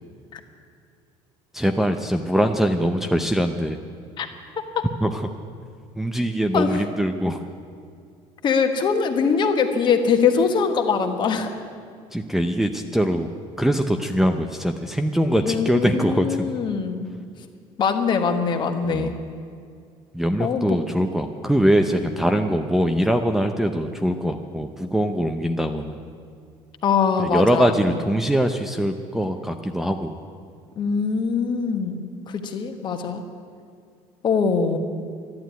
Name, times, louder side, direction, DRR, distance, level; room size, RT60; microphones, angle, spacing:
voice 1, 1.5-3.8 5.0-5.3 6.0-7.5 12.1-13.3 13.6-16.5 18.8-19.1 20.1-26.0 27.2-30.2, equal, 5° right, 3 dB, 0.7 m, -22 dB
voice 2, 8.4-11.5 15.4-17.1 17.8-19.2 20.4-20.8 26.8-27.7 30.8-33.2 34.2-34.8, left 6 dB, 40° left, 6 dB, 1.4 m, -22 dB
12.0 x 11.5 x 9.3 m, 2.3 s
cardioid pair, 130°, 11 cm